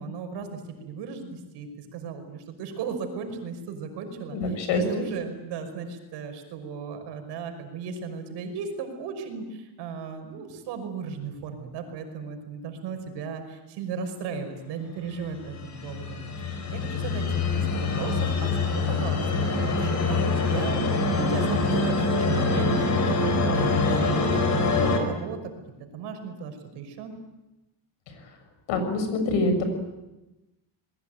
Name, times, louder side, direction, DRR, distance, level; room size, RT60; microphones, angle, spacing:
voice 1, 0.0-4.4 4.7-20.2 20.4-25.4 25.8-27.1, right 5 dB, 70° right, 6 dB, 5.7 m, -36 dB
voice 2, 4.3-5.0 28.1-28.3 28.7-29.6, left 2 dB, 80° left, 8 dB, 6.9 m, -25 dB
sound 1, 15.3-25.0, left 3 dB, 40° left, 5.0 m, -25 dB
27.5 x 21.0 x 9.2 m, 1.0 s
cardioid pair, 170°, 43 cm